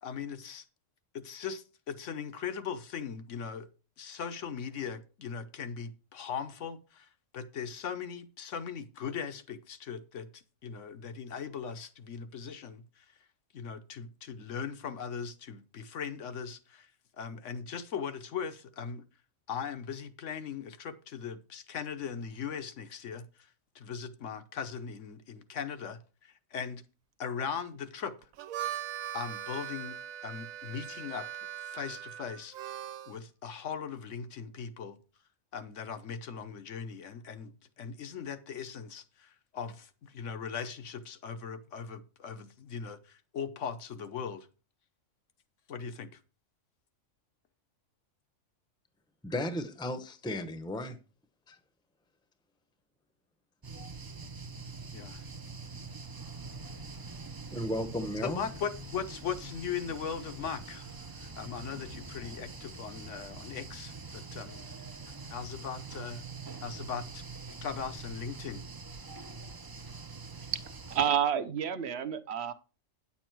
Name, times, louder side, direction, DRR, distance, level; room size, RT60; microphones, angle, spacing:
voice 1, 0.0-0.6 1.1-3.7 4.0-13.0 13.5-16.9 17.2-19.0 19.5-23.5 23.7-26.8 27.2-28.1 29.1-30.0 30.2-32.5 33.1-35.0 35.5-44.5 45.7-46.1 53.7-53.9 54.2-54.3 54.9-55.2 58.2-64.7 65.1-66.2 66.6-67.2 67.6-68.6, left 6 dB, 65° left, 1.2 m, -39 dB
Harmonica, 28.2-33.2, right 10 dB, 85° right, 1.1 m, -40 dB
voice 2, 49.2-51.0 51.5-51.6 57.1-58.4, left 1 dB, 5° left, 0.7 m, -35 dB
sound 1, 53.6-71.1, right 4 dB, 30° right, 0.4 m, -44 dB
voice 3, 70.9-72.5, right 9 dB, 55° right, 0.9 m, -29 dB
9.7 x 7.1 x 4.5 m
omnidirectional pair, 1.4 m